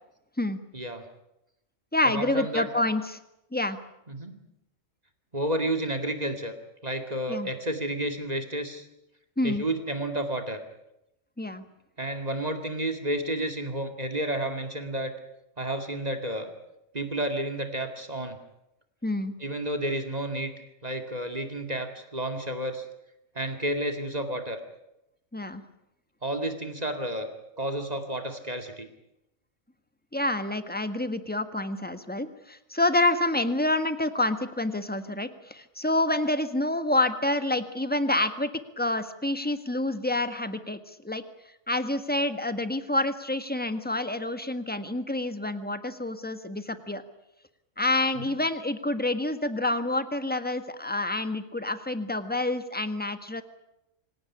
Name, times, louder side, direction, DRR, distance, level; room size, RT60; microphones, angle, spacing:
voice 1, 0.7-1.1 2.1-2.7 4.1-4.5 5.3-6.6 6.8-8.9 9.4-10.6 12.0-15.1 15.6-16.5 16.9-18.4 19.4-20.5 20.8-22.9 23.3-24.6 26.2-27.3 27.6-28.9 48.1-48.3, right 1 dB, 30° right, 6 dB, 2.4 m, -31 dB
voice 2, 1.9-3.2 3.5-3.8 7.3-7.5 9.4-9.6 11.4-11.6 19.0-19.3 25.3-25.6 30.1-38.5 38.8-41.2 41.7-47.0 47.8-53.4, left 2 dB, 5° left, 10 dB, 1.5 m, -28 dB
26.0 x 17.5 x 9.9 m, 0.86 s
omnidirectional pair, 1.4 m